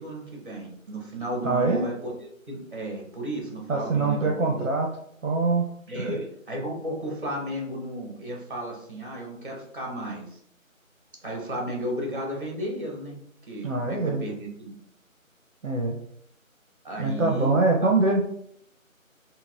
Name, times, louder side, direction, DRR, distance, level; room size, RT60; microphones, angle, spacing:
voice 1, 0.0-4.7 5.9-6.1 6.5-10.4 11.2-13.2 13.5-14.7 16.8-17.9, right 1 dB, 40° right, -1 dB, 0.9 m, -34 dB
voice 2, 1.4-1.8 3.7-4.9 5.2-5.7 5.9-6.2 13.6-14.2 15.6-16.0 17.0-18.2, right 3 dB, 65° right, 1 dB, 0.6 m, -23 dB
4.0 x 2.1 x 2.5 m, 0.70 s
figure-of-eight pair, 175°, 42 cm